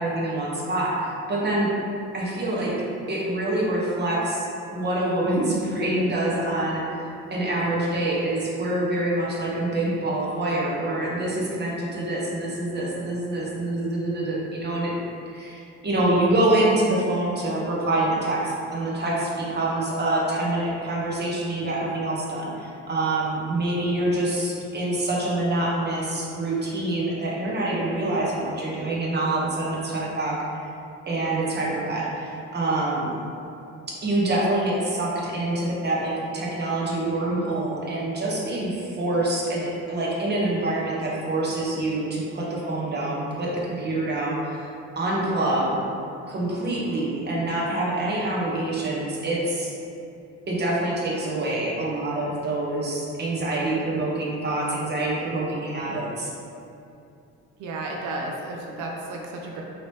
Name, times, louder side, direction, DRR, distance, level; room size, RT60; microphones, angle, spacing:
voice 1, 0.0-1.7 2.1-2.7 3.1-14.9 15.3-30.6 31.1-33.1 33.9-44.7 45.0-45.8 46.3-49.7 50.5-56.3, right 2 dB, 35° right, -4 dB, 0.8 m, -26 dB
voice 2, 57.6-59.6, right 2 dB, 80° right, 0 dB, 0.5 m, -33 dB
2.9 x 2.8 x 3.2 m, 2.7 s
cardioid pair, 90°, 30 cm